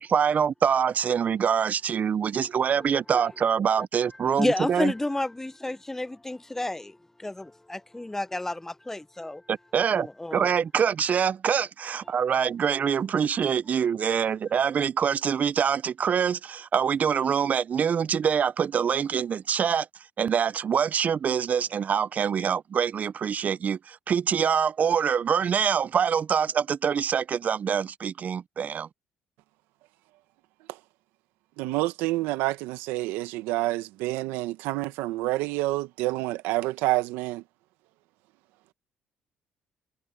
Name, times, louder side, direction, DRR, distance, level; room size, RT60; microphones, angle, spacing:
voice 1, 0.0-4.9 9.5-19.9 20.2-28.9, right 7 dB, 45° right, 0.7 m, -25 dB
voice 2, 4.4-9.4 9.9-10.5, left 1 dB, 10° left, 0.9 m, -31 dB
voice 3, 31.6-37.4, right 18 dB, 85° right, 1.4 m, -28 dB
supercardioid pair, 70°, 4 cm